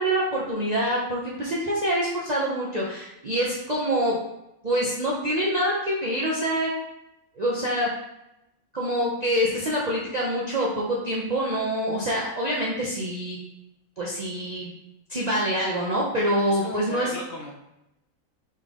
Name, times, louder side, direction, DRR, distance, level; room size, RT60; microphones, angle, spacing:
voice 1, 0.0-4.2 4.6-6.7 7.4-7.9 8.7-13.4 14.0-14.7 15.1-17.1, equal, 40° right, -6 dB, 0.7 m, -25 dB
voice 2, 16.5-17.5, left 2 dB, 60° left, 0 dB, 0.9 m, -37 dB
4.1 x 3.4 x 3.6 m, 0.86 s
omnidirectional pair, 1.4 m